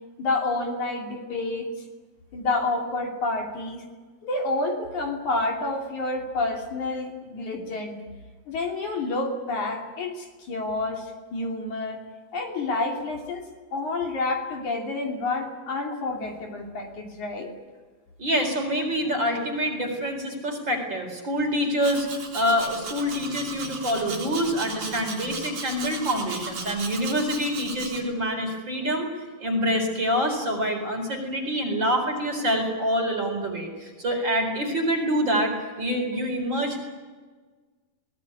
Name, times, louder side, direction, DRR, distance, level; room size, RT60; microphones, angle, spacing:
voice 1, 0.2-1.7 2.3-3.8 4.2-8.0 8.5-12.0 12.3-13.5 13.7-17.5, left 2 dB, 55° left, 1 dB, 4.1 m, -29 dB
voice 2, 18.2-22.1 22.3-29.1 29.4-35.5 35.8-36.8, equal, 30° right, 3 dB, 4.7 m, -26 dB
Domestic sounds home sounds, 21.8-28.0, right 4 dB, 75° right, 5.8 m, -36 dB
23.0 x 19.0 x 9.7 m, 1.4 s
omnidirectional pair, 4.2 m